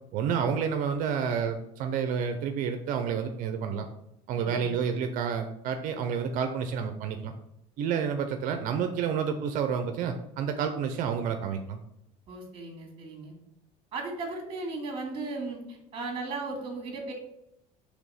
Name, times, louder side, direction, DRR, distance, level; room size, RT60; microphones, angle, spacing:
voice 1, 0.1-3.9 4.3-7.3 7.8-11.8, right 7 dB, 60° right, 7 dB, 0.6 m, -29 dB
voice 2, 4.3-4.7 12.3-13.3 13.9-17.1, right 3 dB, 35° right, 2 dB, 2.0 m, -36 dB
5.1 x 3.4 x 5.6 m, 0.81 s
cardioid pair, 135°, 16 cm